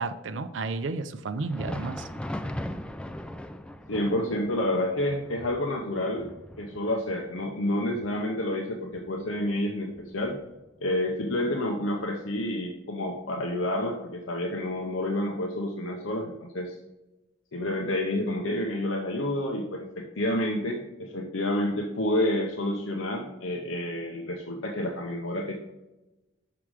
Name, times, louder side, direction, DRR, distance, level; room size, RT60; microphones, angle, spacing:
voice 1, 0.0-2.1, right 3 dB, 70° right, 9 dB, 0.5 m, -32 dB
Thunder, 1.3-10.8 11.1-11.3 12.0-12.2 13.2-13.3, left 1 dB, 5° left, 0.3 m, -40 dB
voice 2, 3.9-6.3 6.6-10.4 10.8-16.8 17.5-25.5, left 1 dB, 85° left, 1 dB, 0.8 m, -29 dB
6.1 x 5.8 x 4.9 m, 1.0 s
head